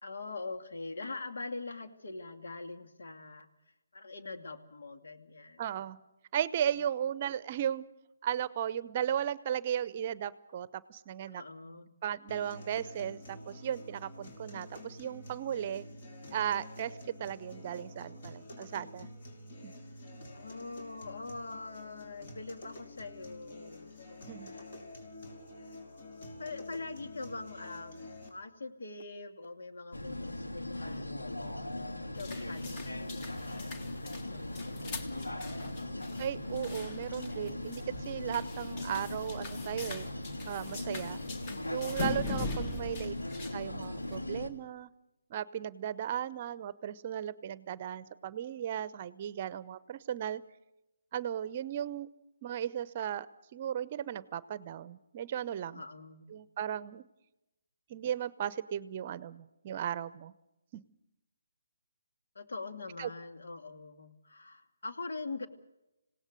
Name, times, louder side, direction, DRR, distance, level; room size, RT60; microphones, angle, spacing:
voice 1, 0.0-3.5 3.9-5.8 6.7-6.9 11.3-12.0 20.3-24.7 25.6-25.7 26.4-28.0 28.3-31.1 32.1-35.4 42.8-43.1 55.7-56.3 62.3-65.5, left 3 dB, 70° left, 6 dB, 2.5 m, -43 dB
voice 2, 5.6-6.0 6.3-7.8 8.2-11.4 12.0-15.8 16.3-19.1 19.6-19.7 24.3-24.5 36.2-40.1 40.5-41.2 41.7-43.1 43.5-44.9 45.3-50.4 51.1-52.1 52.4-53.3 53.5-55.8 56.3-57.0 57.9-60.3 60.7-60.8 63.0-63.1, right 9 dB, 35° right, 18 dB, 0.8 m, -36 dB
sound 1, 12.3-28.3, left 1 dB, 50° left, 5.2 m, -48 dB
sound 2, 29.9-44.5, left 1 dB, 90° left, 2.6 m, -39 dB
sound 3, 32.2-44.2, left 3 dB, 30° left, 2.1 m, -42 dB
26.5 x 17.5 x 6.7 m, 0.92 s
figure-of-eight pair, 150°, 0 cm